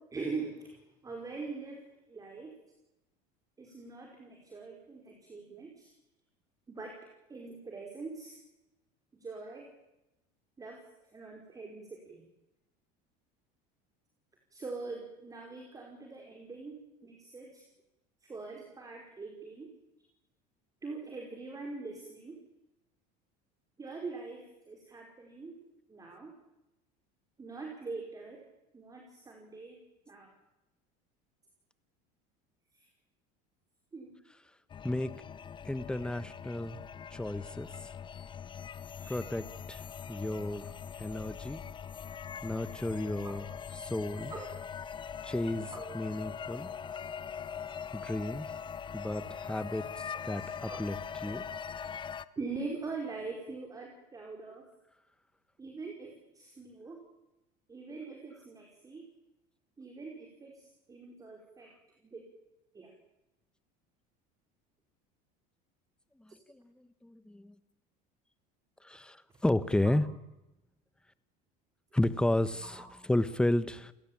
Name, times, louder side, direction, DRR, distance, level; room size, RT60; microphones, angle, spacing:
voice 1, 0.1-2.6 3.6-5.9 6.7-7.0 7.3-8.4 9.1-9.7 10.6-10.8 11.1-12.2 14.5-17.6 18.2-19.7 20.8-22.4 23.8-25.6 25.9-26.4 27.4-28.4 28.7-29.8 30.1-30.3 32.7-32.9 33.9-34.2 39.0-39.3 43.2-43.6 44.3-44.6 45.7-46.0 50.1-50.8 51.2-51.3 52.4-54.7 55.6-57.0 57.7-59.1 59.8-61.7 62.0-62.2 62.7-62.9 69.8-69.9 72.7-72.9, right 4 dB, 20° right, 1 dB, 5.0 m, -43 dB
sound 1, 34.7-52.3, left 7 dB, 25° left, 1.0 m, -42 dB
voice 2, 35.6-36.8 37.1-37.7 39.1-39.8 40.1-40.7 41.0-41.6 42.4-43.4 43.8-44.3 45.2-46.7 47.9-48.5 48.9-51.0 51.2-51.4 66.2-66.7 67.0-67.5 68.8-70.0 71.9-73.9, left 1 dB, 5° left, 14 dB, 1.3 m, -32 dB
30.0 x 17.0 x 8.8 m, 0.95 s
supercardioid pair, 130°, 19 cm